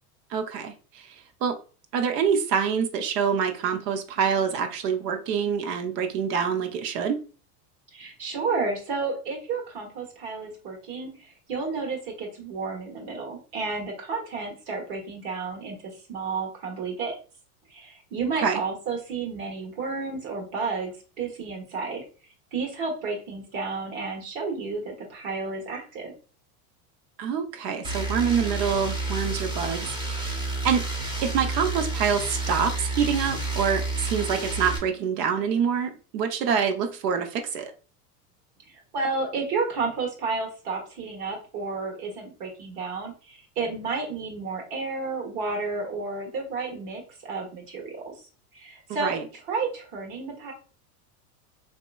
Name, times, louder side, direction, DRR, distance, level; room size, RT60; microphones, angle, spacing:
voice 1, 0.3-1.2 1.4-1.6 1.9-7.2 18.4-18.6 27.2-30.4 30.6-30.9 31.2-37.7 49.0-49.2, right 7 dB, 80° right, 7 dB, 0.8 m, -26 dB
voice 2, 7.9-17.1 17.7-22.0 22.5-26.1 38.6-48.1 48.5-49.2 49.5-50.5, right 4 dB, 55° right, 0 dB, 1.3 m, -31 dB
sound 1, 27.8-34.8, right 2 dB, 10° right, 0.6 m, -30 dB
3.1 x 2.9 x 2.2 m, 0.36 s
supercardioid pair, 115°, 47 cm